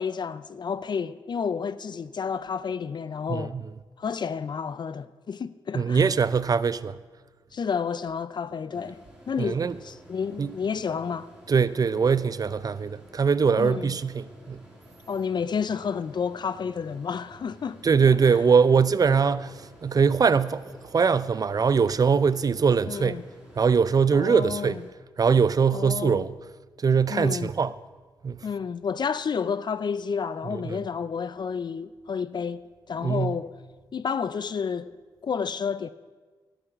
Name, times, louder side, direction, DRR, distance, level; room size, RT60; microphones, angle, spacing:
voice 1, 0.0-3.6 4.0-6.1 7.5-9.0 9.3-11.3 13.6-13.9 15.1-17.8 22.9-23.2 24.1-24.8 25.7-26.2 27.1-27.5 28.4-33.5 33.9-34.9 35.2-35.9, left 6 dB, 50° left, 0.5 m, -30 dB
voice 2, 3.3-3.6 5.7-7.0 9.4-9.8 10.4-10.5 11.5-14.6 17.8-19.5 19.8-23.2 23.6-24.8 25.2-26.3 26.8-27.7 28.2-28.4 30.5-30.8 33.0-33.4, right 6 dB, 40° right, 0.5 m, -22 dB
sound 1, 8.7-24.9, right 1 dB, 5° right, 4.4 m, -51 dB
12.0 x 6.9 x 8.8 m
cardioid pair, 80°, 9 cm